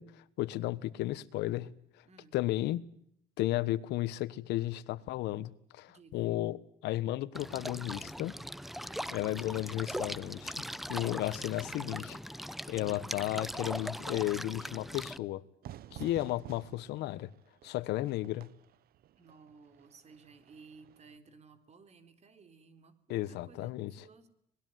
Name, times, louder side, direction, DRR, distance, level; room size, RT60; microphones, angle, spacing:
voice 1, 0.0-1.8 2.3-2.8 3.4-8.3 9.1-10.5 10.9-15.4 15.9-17.3 17.6-18.5 23.1-23.9, left 15 dB, 85° left, 1.3 m, -34 dB
voice 2, 2.1-2.4 5.9-6.4 8.8-9.1 15.9-16.3 19.2-24.3, right 4 dB, 40° right, 4.0 m, -57 dB
sound 1, 7.3-15.2, equal, ahead, 0.9 m, -40 dB
Fire / Fireworks, 15.6-21.2, right 12 dB, 65° right, 1.0 m, -51 dB
25.5 x 20.0 x 9.4 m
cardioid pair, 110°, 17 cm